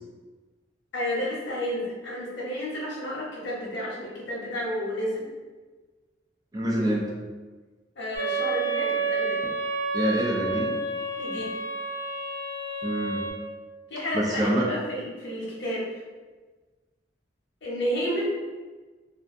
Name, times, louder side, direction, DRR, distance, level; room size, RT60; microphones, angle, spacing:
voice 1, 0.9-5.3 8.0-9.5 11.2-11.5 13.9-15.9 17.6-18.3, equal, 90° left, -5 dB, 0.8 m, -31 dB
voice 2, 6.5-7.2 9.9-10.8 12.8-13.2 14.1-14.7, right 1 dB, 20° right, -4 dB, 0.4 m, -26 dB
sound 1, 8.1-13.3, right 3 dB, 50° right, 0.7 m, -29 dB
2.4 x 2.2 x 2.5 m, 1.3 s
head